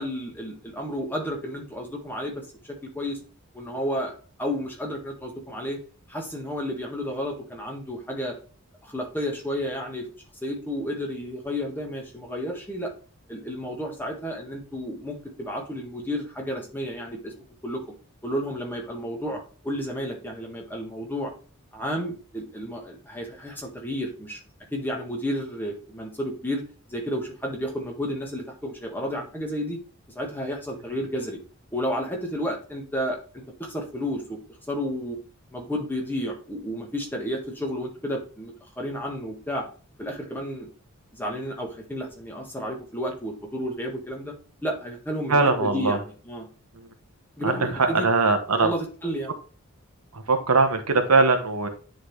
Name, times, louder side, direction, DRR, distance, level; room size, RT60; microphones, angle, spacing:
voice 1, 0.0-3.2 3.5-4.1 4.4-5.8 6.1-8.4 8.8-10.1 10.4-12.9 13.3-17.3 17.6-17.8 18.2-21.3 21.7-24.4 24.7-26.6 26.9-29.8 30.1-31.4 31.7-34.4 34.7-35.2 35.5-39.7 40.0-40.7 41.1-44.3 44.6-46.5 47.4-48.1 48.6-49.3, equal, 10° left, 0 dB, 1.5 m, -31 dB
voice 2, 45.3-46.0 46.7-46.9 47.4-48.7 50.1-51.7, right 3 dB, 90° right, 6 dB, 1.1 m, -21 dB
9.9 x 3.9 x 3.2 m, 0.38 s
head